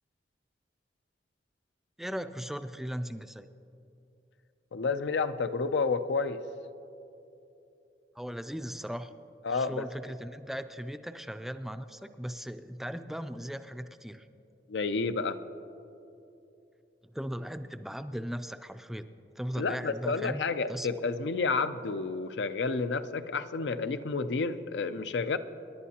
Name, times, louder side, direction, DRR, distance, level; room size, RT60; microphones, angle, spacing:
voice 1, 2.0-3.5 8.2-9.1 9.5-14.3 17.1-20.4 20.7-20.9, equal, ahead, 10 dB, 0.3 m, -38 dB
voice 2, 4.7-6.4 9.4-9.9 14.7-15.4 19.6-25.4, left 4 dB, 90° left, 11 dB, 0.5 m, -30 dB
26.5 x 11.0 x 2.8 m, 2.9 s
head